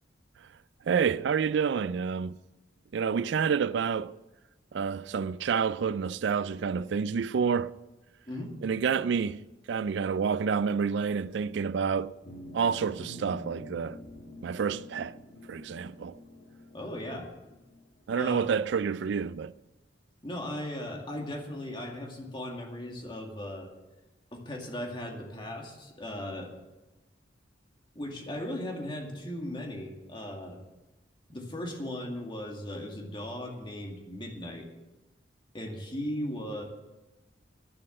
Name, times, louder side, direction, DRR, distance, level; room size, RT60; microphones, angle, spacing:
voice 1, 0.9-2.4 2.9-4.2 4.7-7.7 8.6-9.4 9.7-12.1 12.5-14.0 14.4-15.2 15.5-16.2 18.1-19.5, right 6 dB, 70° right, 0.4 m, -28 dB
sound 1, 12.2-18.0, equal, 55° left, 1.8 m, -47 dB
voice 2, 16.7-17.3 18.1-18.5 20.2-23.7 24.3-26.5 28.0-30.6 31.3-34.7 35.5-36.6, left 1 dB, 25° left, 2.2 m, -37 dB
11.0 x 9.9 x 7.7 m
head